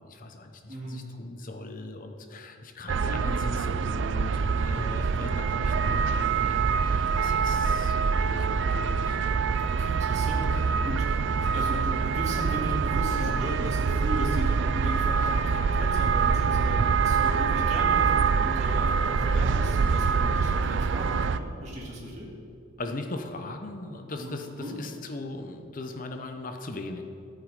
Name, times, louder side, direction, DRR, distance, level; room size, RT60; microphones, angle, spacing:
voice 1, 0.0-9.3 22.8-27.0, left 2 dB, 40° left, 5 dB, 0.8 m, -39 dB
voice 2, 0.7-1.1 4.6-5.3 9.7-22.3 24.2-24.8, equal, 35° right, -5 dB, 2.2 m, -36 dB
sound 1, 2.9-21.4, right 5 dB, 60° right, 0.4 m, -25 dB
14.0 x 8.4 x 4.9 m, 2.5 s
head